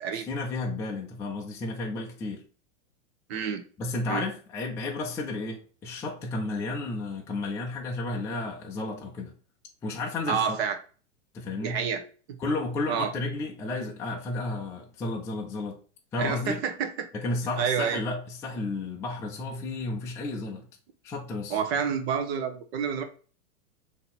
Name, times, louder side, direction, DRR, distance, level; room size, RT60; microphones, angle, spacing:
voice 1, 0.3-2.4 3.8-9.3 9.8-10.6 11.3-11.8 12.4-15.8 16.1-16.6 17.1-20.7 21.0-21.6, left 2 dB, 10° left, 0.3 m, -32 dB
voice 2, 3.3-3.6 4.1-4.2 10.3-10.8 11.6-12.0 12.3-12.4 12.9-13.1 16.2-17.1 17.6-18.0 21.5-23.0, right 7 dB, 55° right, 1.0 m, -28 dB
3.8 x 2.9 x 4.1 m
hypercardioid pair, 125°, 38 cm